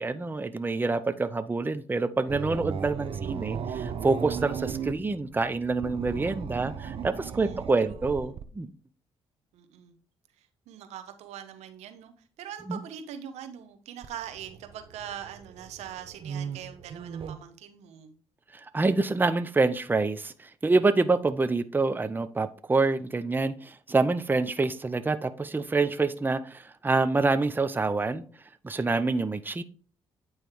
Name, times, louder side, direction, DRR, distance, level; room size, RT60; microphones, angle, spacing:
voice 1, 0.0-8.7 12.7-12.8 18.5-28.2 28.6-29.6, right 3 dB, 15° right, 0.6 m, -27 dB
sound 1, 2.3-8.5 14.0-17.4, right 7 dB, 55° right, 0.7 m, -37 dB
voice 2, 7.2-8.3 9.5-9.9 10.4-18.2, right 9 dB, 80° right, 0.9 m, -43 dB
8.9 x 3.2 x 4.6 m
supercardioid pair, 65°, 11 cm